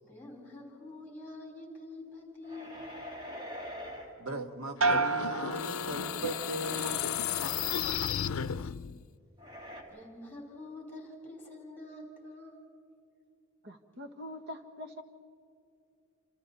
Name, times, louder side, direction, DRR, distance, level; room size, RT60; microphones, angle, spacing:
voice 1, 0.0-3.2 8.1-8.9 9.8-12.6, left 2 dB, 10° left, 5.1 m, -47 dB
sound 1, 2.4-4.1 5.6-7.8 9.4-9.8, equal, 20° right, 3.1 m, -44 dB
voice 2, 4.2-7.2, right 1 dB, 90° right, 1.6 m, -38 dB
sound 2, 4.8-9.0, left 9 dB, 90° left, 0.5 m, -34 dB
sound 3, 4.8-6.5 6.9-7.5, right 4 dB, 70° right, 0.9 m, -32 dB
voice 3, 13.6-15.0, left 1 dB, 55° right, 1.7 m, -44 dB
27.5 x 27.5 x 4.2 m
head